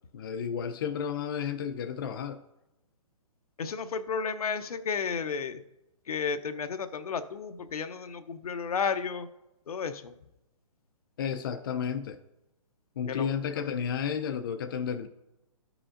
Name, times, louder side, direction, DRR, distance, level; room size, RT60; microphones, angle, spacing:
voice 1, 0.1-2.4 11.2-12.2 13.0-15.1, left 7 dB, 40° left, 0.4 m, -32 dB
voice 2, 3.6-5.6 6.1-9.3 9.7-10.1 13.1-13.3, left 6 dB, 85° left, 0.7 m, -32 dB
13.0 x 5.0 x 2.5 m
hypercardioid pair, 165°, 18 cm